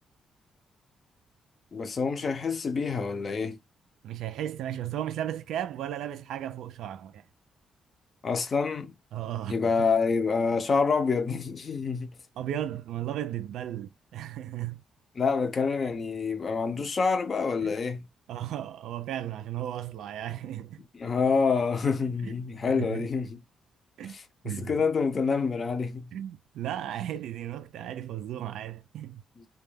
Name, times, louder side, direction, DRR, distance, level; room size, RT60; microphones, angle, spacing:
voice 1, 1.7-3.6 8.2-8.9 9.5-12.1 15.2-18.1 20.9-23.4 24.0-26.1 29.4-29.5, left 5 dB, 30° left, 0.5 m, -27 dB
voice 2, 4.0-7.2 9.1-9.9 12.4-14.8 17.6-17.8 18.3-20.8 22.2-22.4 22.7-23.0 24.0-24.2 24.4-24.8 26.1-29.2, right 11 dB, 90° right, 0.3 m, -35 dB
2.2 x 2.2 x 3.2 m
cardioid pair, 170°, 0 cm